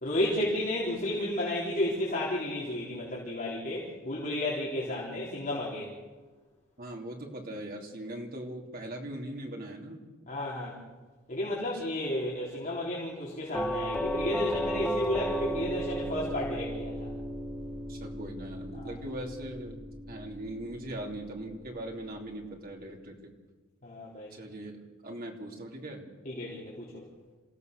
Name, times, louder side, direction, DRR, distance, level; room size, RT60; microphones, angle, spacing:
voice 1, 0.0-5.9 10.3-10.8 11.3-17.1 18.7-19.0 23.8-24.3 26.3-27.0, left 1 dB, 40° left, -6 dB, 4.0 m, -32 dB
voice 2, 6.8-10.0 11.7-11.8 17.9-19.8 20.1-23.3 24.3-24.8 25.0-26.0, right 1 dB, 45° right, 1 dB, 3.1 m, -40 dB
Doorbell, 13.5-22.4, right 1 dB, 5° left, 2.0 m, -35 dB
27.5 x 16.5 x 6.8 m, 1.3 s
head